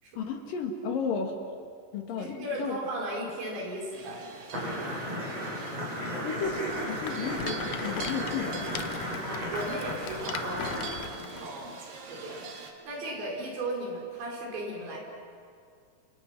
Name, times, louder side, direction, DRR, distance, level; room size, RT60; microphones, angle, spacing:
voice 1, 0.2-1.4 1.9-2.8 6.2-9.0, left 5 dB, 60° left, 3 dB, 3.2 m, -33 dB
voice 2, 2.2-5.1 9.1-10.7 11.1-11.8 12.1-15.0, right 1 dB, 90° right, -1 dB, 7.1 m, -37 dB
sound 1, 3.9-12.7, right 4 dB, 60° right, 3.4 m, -44 dB
sound 2, 4.5-10.9, equal, 35° right, 8.6 m, -34 dB
Rattle, 6.4-11.5, left 10 dB, 85° left, 1.8 m, -41 dB
29.5 x 28.5 x 6.1 m, 2.2 s
omnidirectional pair, 4.9 m